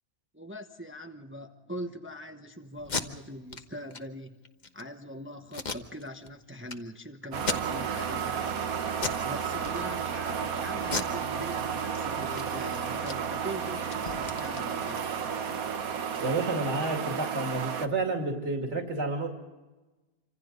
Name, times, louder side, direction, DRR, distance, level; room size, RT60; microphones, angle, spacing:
voice 1, 0.3-4.3 4.7-8.6 9.2-15.1, equal, 10° right, 5 dB, 1.0 m, -42 dB
Packing tape duct tape, 2.8-3.0 3.5-3.6 3.9-4.0 4.4-4.8 5.5-6.3 6.7-6.8 7.3-8.0 8.4-8.6 9.0-9.3 9.6-10.2 10.8-12.0 12.3-12.4 12.7-15.3, left 4 dB, 30° left, 1.2 m, -35 dB
sound 1, 7.3-17.9, right 7 dB, 70° right, 1.6 m, -32 dB
voice 2, 16.2-19.3, right 3 dB, 50° right, 2 dB, 2.9 m, -30 dB
27.0 x 26.0 x 4.0 m, 1.2 s
omnidirectional pair, 1.6 m